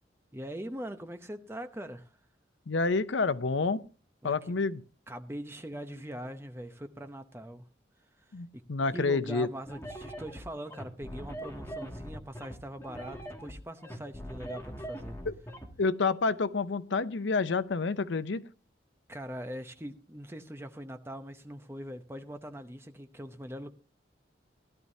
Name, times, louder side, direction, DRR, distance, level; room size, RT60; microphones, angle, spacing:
voice 1, 0.3-2.1 4.2-4.5 5.1-7.6 8.5-8.6 8.9-15.2 19.1-23.7, equal, 15° right, 0.8 m, -42 dB
voice 2, 2.7-3.8 4.2-4.8 8.3-9.5 15.3-15.4 15.8-18.4, left 4 dB, 85° left, 0.6 m, -28 dB
sound 1, 9.7-15.7, equal, 15° left, 2.1 m, -41 dB
17.0 x 11.5 x 2.7 m
head